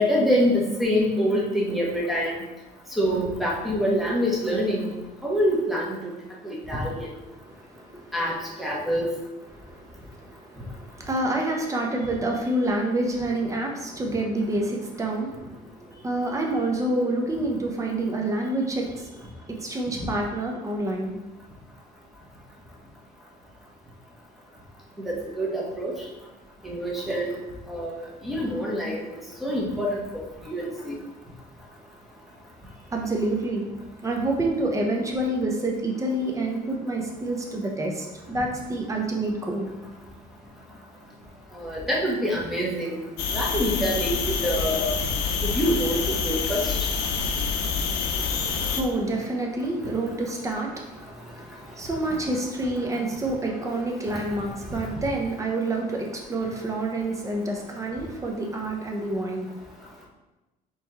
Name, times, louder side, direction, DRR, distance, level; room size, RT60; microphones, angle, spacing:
voice 1, 0.0-2.3 3.0-4.9 5.2-6.0 6.4-7.1 8.1-9.1 25.0-25.9 26.6-27.4 27.7-29.0 29.4-30.0 30.5-31.0 41.5-43.0 43.3-44.9 45.4-46.7, equal, ahead, -4 dB, 1.2 m, -25 dB
voice 2, 7.4-8.1 9.5-19.3 19.6-21.1 32.9-33.6 34.0-39.7 48.1-59.6, right 2 dB, 20° right, 0 dB, 0.8 m, -28 dB
sound 1, 43.2-48.8, left 5 dB, 85° left, 0.6 m, -27 dB
4.1 x 3.1 x 3.6 m, 1.1 s
cardioid pair, 110°, 17 cm